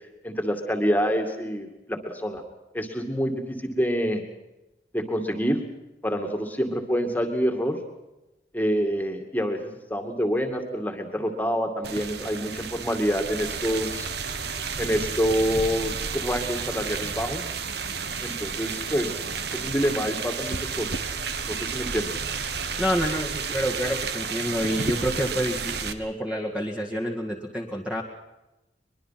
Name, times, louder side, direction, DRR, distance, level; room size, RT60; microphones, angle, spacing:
voice 1, 0.2-2.4 2.7-4.2 4.9-5.6 6.0-7.8 8.5-14.1 14.8-17.4 18.2-19.2 19.5-21.0 21.4-22.2, equal, 10° left, 4 dB, 2.4 m, -27 dB
sound 1, 11.8-25.9, right 5 dB, 70° right, 1.5 m, -31 dB
voice 2, 22.8-28.0, equal, 5° right, -1 dB, 2.0 m, -28 dB
23.0 x 22.5 x 6.0 m, 0.99 s
head